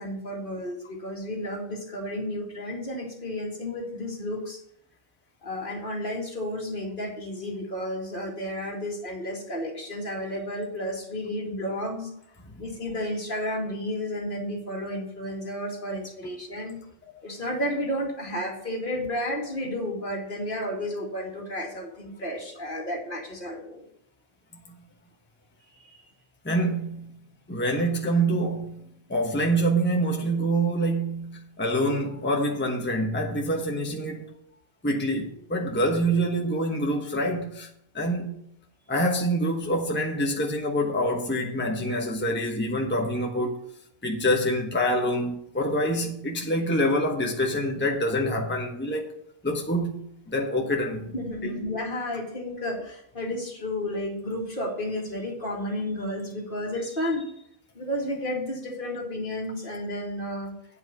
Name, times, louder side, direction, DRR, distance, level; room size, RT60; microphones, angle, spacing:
voice 1, 0.0-4.6 5.4-12.1 12.6-16.8 17.2-23.8 25.8-26.0 51.1-57.3 57.8-60.5, left 1 dB, 55° left, 2.3 m, -32 dB
voice 2, 26.4-27.1 27.5-28.8 29.1-34.3 34.8-37.7 37.9-38.3 38.9-43.6 44.0-49.2 49.4-51.1 51.4-51.6, right 1 dB, 10° left, 1.1 m, -26 dB
9.2 x 5.4 x 7.9 m
omnidirectional pair, 1.0 m